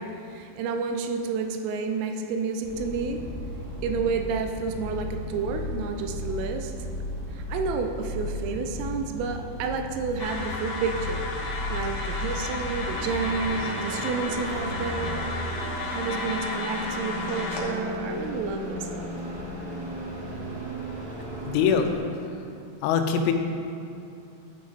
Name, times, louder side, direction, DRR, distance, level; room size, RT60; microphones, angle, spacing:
voice 1, 0.0-3.2 3.8-6.9 7.3-11.2 11.7-15.3 15.9-19.1, right 5 dB, 85° right, 5 dB, 3.2 m, -30 dB
sound 1, 2.6-22.0, left 1 dB, 55° right, 2.2 m, -35 dB
sound 2, 10.2-17.6, left 2 dB, 65° left, 2.5 m, -33 dB
voice 2, 21.5-21.9 22.8-23.3, left 7 dB, 90° left, 6 dB, 3.4 m, -22 dB
11.5 x 6.3 x 4.1 m, 2.7 s
omnidirectional pair, 5.8 m